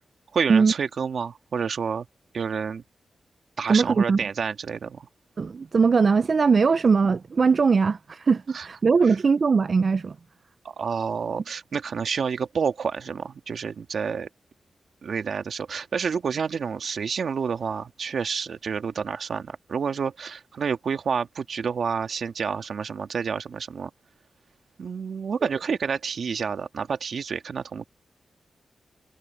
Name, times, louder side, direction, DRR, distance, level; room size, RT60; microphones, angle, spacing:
voice 1, 0.3-2.1 2.3-2.8 3.6-5.1 8.5-8.7 9.1-9.2 10.6-14.3 15.0-23.9 24.8-27.9, right 6 dB, 70° right, 1.7 m, -29 dB
voice 2, 3.7-4.2 5.4-10.2 25.4-25.5, right 5 dB, 50° right, 0.3 m, -20 dB
wide cardioid pair, 95°, 0 cm